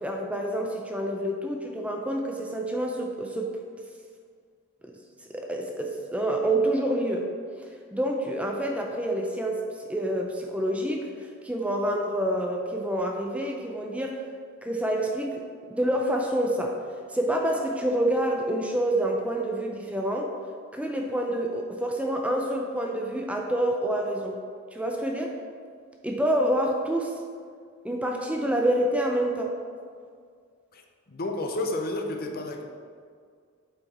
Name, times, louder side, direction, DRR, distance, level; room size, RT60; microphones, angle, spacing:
voice 1, 0.0-3.5 4.8-4.9 5.3-7.3 7.9-14.2 14.6-15.4 15.7-16.8 17.1-20.3 20.7-24.4 24.7-25.3 26.0-27.1 27.8-29.5, right 1 dB, 5° right, 1 dB, 0.5 m, -27 dB
voice 2, 31.1-32.6, left 2 dB, 45° left, 3 dB, 0.7 m, -31 dB
7.9 x 4.6 x 4.3 m, 2.1 s
head